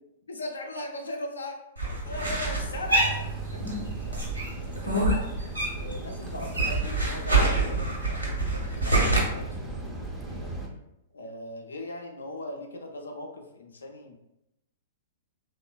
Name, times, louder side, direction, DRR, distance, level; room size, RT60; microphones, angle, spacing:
voice 1, 0.3-1.5 2.0-4.3 4.6-5.2 5.7-10.5 11.1-14.2, left 2 dB, 75° left, 2 dB, 0.4 m, -39 dB
sound 1, 1.8-3.8 4.1-6.0 6.2-9.2, right 2 dB, 90° right, 0.9 m, -26 dB
sound 2, 2.0-10.7, right 2 dB, 15° right, 0.4 m, -37 dB
Keyboard (musical), 2.9-6.4, right 10 dB, 60° right, 0.6 m, -44 dB
3.0 x 2.1 x 2.2 m, 0.86 s
figure-of-eight pair, 110°, 0 cm